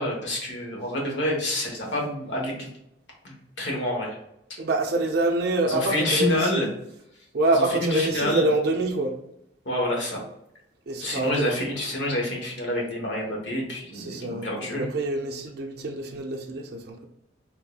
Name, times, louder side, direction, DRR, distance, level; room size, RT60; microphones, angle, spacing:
voice 1, 0.0-2.7 3.2-4.2 5.7-6.7 7.6-8.5 9.6-10.2 11.0-14.8, left 1 dB, 65° left, -1 dB, 1.0 m, -28 dB
voice 2, 4.6-6.7 7.3-9.1 10.9-11.6 13.9-17.1, right 2 dB, 55° right, 2 dB, 0.5 m, -26 dB
3.6 x 3.0 x 2.3 m, 0.81 s
head